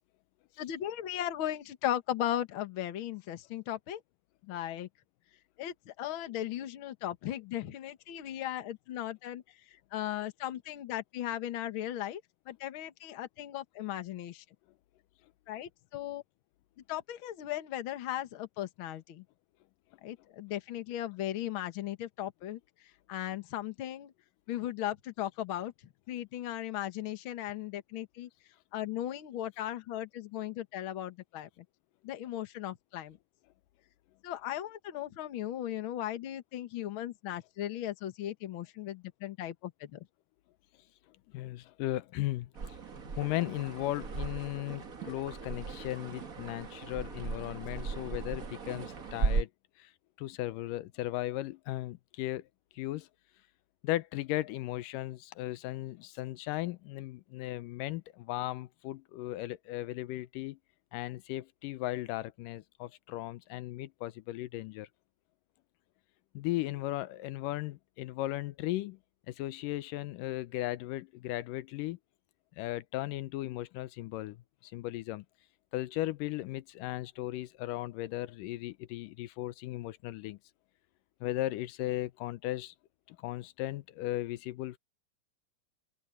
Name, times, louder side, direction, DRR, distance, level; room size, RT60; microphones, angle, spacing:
voice 1, 0.6-4.0 4.4-4.9 5.6-9.4 9.7-12.2 12.5-14.4 15.5-16.2 16.9-19.2 20.0-22.6 23.1-24.1 24.5-25.7 26.1-28.3 28.7-31.6 32.0-33.2 34.2-40.1, left 12 dB, 55° left, 1.5 m, -37 dB
voice 2, 41.3-42.5 43.2-49.5 49.8-49.9 50.2-52.5 52.7-53.1 53.8-60.6 60.9-64.9 66.3-69.0 69.3-72.0 72.6-75.2 75.7-80.4 81.2-82.7 83.1-84.8, left 16 dB, 80° left, 2.3 m, -36 dB
sound 1, 42.5-49.4, right 4 dB, 40° right, 1.2 m, -37 dB
open air
omnidirectional pair, 4.0 m